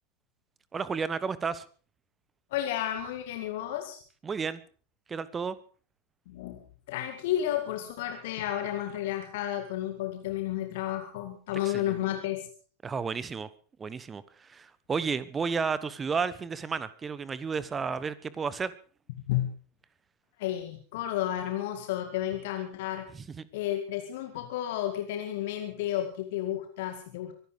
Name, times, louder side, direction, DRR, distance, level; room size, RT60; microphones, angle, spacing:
voice 1, 0.7-1.6 4.2-4.6 5.1-5.6 11.6-12.0 12.8-13.5 13.8-18.7 23.1-23.4, right 5 dB, 20° right, 18 dB, 1.1 m, -32 dB
voice 2, 2.5-4.0 6.3-12.5 19.3-19.5 20.4-23.1 23.5-27.3, left 12 dB, 50° left, 6 dB, 2.0 m, -32 dB
23.5 x 12.0 x 4.9 m, 0.41 s
figure-of-eight pair, 90°, 0 cm